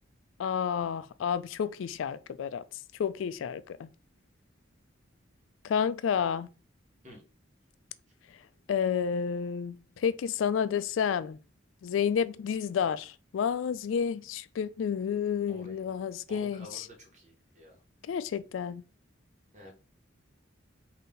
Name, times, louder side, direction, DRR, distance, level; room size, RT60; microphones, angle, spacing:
voice 1, 0.4-2.6 3.0-3.9 5.6-6.5 8.3-8.4 8.7-11.4 11.8-16.9 18.0-18.8, left 7 dB, 75° left, 0.3 m, -30 dB
voice 2, 15.5-15.9 16.3-17.8 19.5-19.7, equal, 35° right, 1.5 m, -50 dB
4.0 x 2.7 x 3.8 m
head